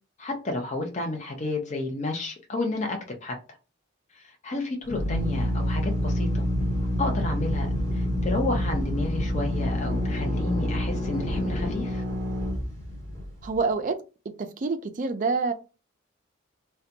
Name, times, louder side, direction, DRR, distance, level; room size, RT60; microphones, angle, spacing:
voice 1, 0.2-3.4 4.1-6.5 7.0-12.0, left 2 dB, 35° left, 0.5 m, -31 dB
Drill, 4.8-13.5, equal, 15° left, 1.3 m, -27 dB
voice 2, 13.4-14.0 14.4-15.5, right 4 dB, 40° right, 0.3 m, -26 dB
2.5 x 2.2 x 2.7 m
head